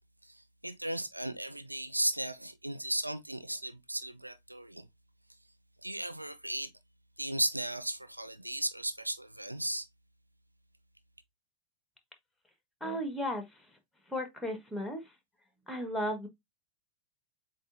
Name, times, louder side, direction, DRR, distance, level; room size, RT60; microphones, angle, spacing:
voice 1, 0.2-4.9 5.8-6.7 7.2-9.9, right 1 dB, 85° right, 0.4 m, -35 dB
voice 2, 12.8-13.7 14.1-15.1 15.7-16.3, equal, 5° left, 1.5 m, -35 dB
7.7 x 2.6 x 2.6 m
figure-of-eight pair, 90°, 0 cm